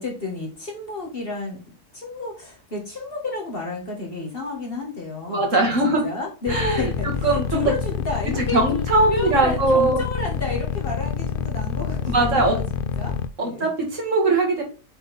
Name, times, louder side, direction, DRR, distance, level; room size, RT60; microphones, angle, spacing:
voice 1, 0.0-1.6 1.9-12.7 13.0-13.7, left 3 dB, 45° left, -1 dB, 2.1 m, -31 dB
voice 2, 5.3-6.0 6.5-6.9 7.2-7.7 8.4-10.0 12.1-12.6 13.4-14.6, right 2 dB, 65° right, 1 dB, 2.5 m, -20 dB
sound 1, 6.5-13.3, left 8 dB, 65° left, 0.5 m, -27 dB
7.1 x 4.1 x 5.4 m, 0.36 s
omnidirectional pair, 1.4 m